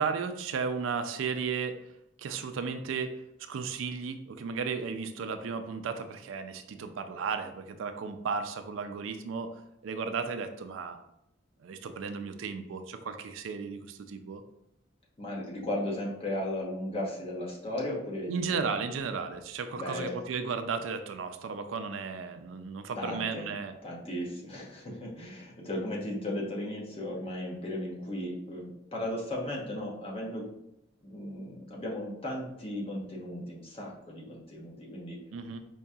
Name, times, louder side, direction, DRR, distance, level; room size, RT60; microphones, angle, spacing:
voice 1, 0.0-1.8 2.2-11.0 11.6-14.4 18.3-23.7 35.3-35.6, right 5 dB, 80° right, 8 dB, 0.4 m, -34 dB
voice 2, 15.2-18.8 19.7-20.2 22.9-23.5 23.8-30.5 31.0-35.2, left 1 dB, 30° left, -3 dB, 0.9 m, -36 dB
4.7 x 2.7 x 2.3 m, 0.82 s
head